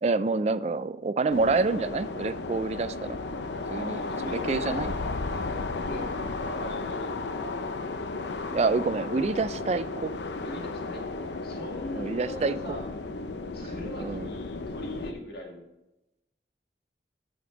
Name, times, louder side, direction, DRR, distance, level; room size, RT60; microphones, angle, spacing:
voice 1, 0.0-3.2 3.7-4.0 4.3-4.9 8.5-10.1 11.9-12.5 13.6-13.7 14.0-14.3, right 3 dB, 35° right, 14 dB, 0.3 m, -27 dB
sound 1, 1.3-15.1, left 3 dB, 80° left, 0.6 m, -34 dB
voice 2, 3.7-5.0 5.8-6.1 6.4-7.6 10.4-11.0 11.4-12.9 13.5-15.7, left 1 dB, 60° left, 0 dB, 2.1 m, -40 dB
14.0 x 5.2 x 3.9 m, 0.95 s
head